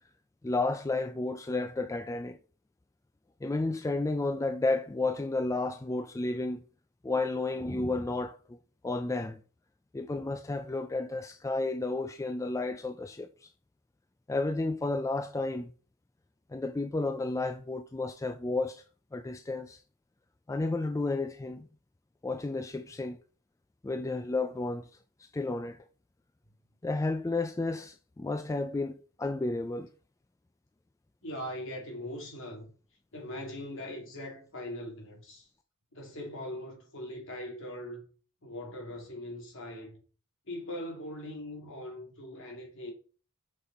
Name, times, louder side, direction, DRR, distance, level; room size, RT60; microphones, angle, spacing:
voice 1, 0.4-2.4 3.4-6.6 7.0-8.4 8.8-9.4 9.9-13.5 14.3-15.7 16.5-18.8 19.1-19.8 20.5-21.6 22.2-23.2 23.8-24.8 25.3-25.8 26.8-29.9, left 2 dB, 15° left, 0.3 m, -32 dB
voice 2, 31.2-32.7 33.1-35.5 35.9-38.0 38.4-40.0 40.5-42.9, left 1 dB, 60° left, 2.7 m, -41 dB
6.6 x 5.3 x 4.1 m
head